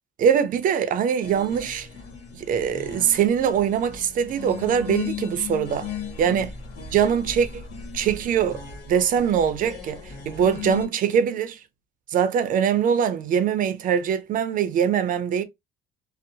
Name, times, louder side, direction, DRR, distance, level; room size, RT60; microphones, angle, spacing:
voice 1, 0.2-1.9 2.3-5.9 6.2-6.5 6.9-7.6 7.9-8.6 8.9-10.0 10.3-11.6 12.1-15.4, right 8 dB, 55° right, 0.5 m, -22 dB
sound 1, 1.2-10.9, left 7 dB, 75° left, 1.1 m, -37 dB
2.7 x 2.0 x 2.7 m
cardioid pair, 110°, 17 cm